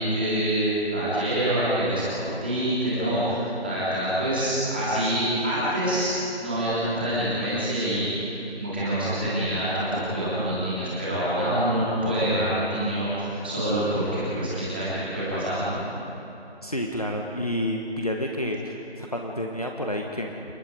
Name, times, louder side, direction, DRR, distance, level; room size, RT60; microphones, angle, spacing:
voice 1, 0.0-8.2 8.6-15.8, right 1 dB, 10° right, -11 dB, 3.6 m, -26 dB
voice 2, 16.6-20.4, left 1 dB, 35° left, 1 dB, 1.3 m, -29 dB
28.0 x 22.5 x 5.2 m, 3.0 s
figure-of-eight pair, 175°, 33 cm